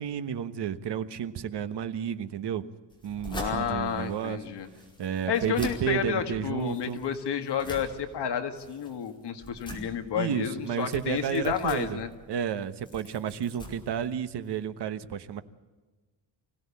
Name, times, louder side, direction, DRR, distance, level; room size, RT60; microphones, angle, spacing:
voice 1, 0.0-2.6 3.0-4.4 5.0-7.0 10.1-12.0 12.3-15.4, right 8 dB, 65° right, 11 dB, 1.3 m, -31 dB
sound 1, 2.9-14.6, equal, 10° left, 4.8 m, -44 dB
voice 2, 3.3-4.7 5.3-12.1, left 8 dB, 60° left, 7 dB, 1.9 m, -31 dB
25.0 x 16.5 x 8.5 m, 1.3 s
wide cardioid pair, 175°, 45 cm